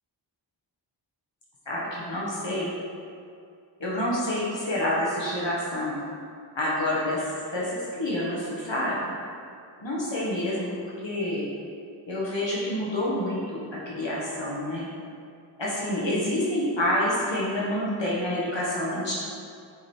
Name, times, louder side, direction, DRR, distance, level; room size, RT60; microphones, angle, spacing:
voice 1, 1.7-2.7 3.8-6.0 6.5-7.7 7.9-9.0 9.8-10.7 11.0-11.5 12.1-14.9 15.6-19.1, left 1 dB, 80° left, -6 dB, 1.6 m, -28 dB
7.8 x 5.1 x 4.5 m, 2.4 s
wide cardioid pair, 40°, 44 cm